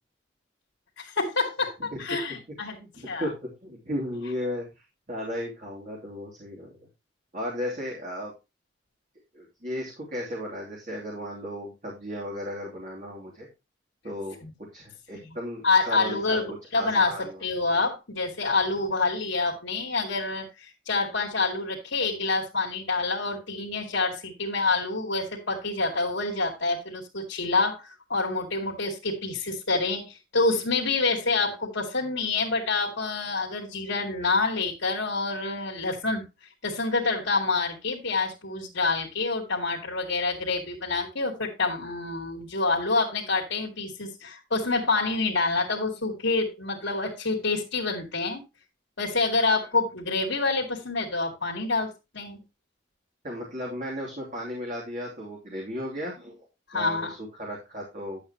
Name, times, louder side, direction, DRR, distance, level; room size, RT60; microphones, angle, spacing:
voice 1, 1.0-2.8 3.1-3.3 14.4-14.5 15.6-36.2 36.6-48.4 49.0-52.4 56.7-57.1, left 3 dB, 85° left, 2.4 m, -27 dB
voice 2, 2.8-3.3 3.6-4.7 5.1-6.7 7.3-8.3 9.3-13.5 14.0-16.4 16.7-17.4 53.2-56.5 56.7-58.2, equal, 40° right, 3.0 m, -35 dB
11.5 x 8.1 x 2.9 m
head